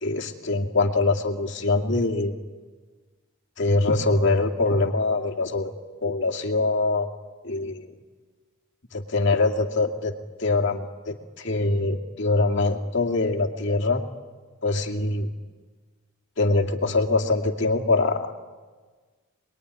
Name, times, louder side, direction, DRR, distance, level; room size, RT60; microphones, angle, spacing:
voice 1, 0.0-2.3 3.6-5.7 6.0-7.1 7.4-7.9 8.9-10.1 10.4-14.0 14.6-15.3 16.4-18.3, left 3 dB, 55° left, 2 dB, 2.4 m, -23 dB
27.0 x 21.5 x 10.0 m, 1.4 s
head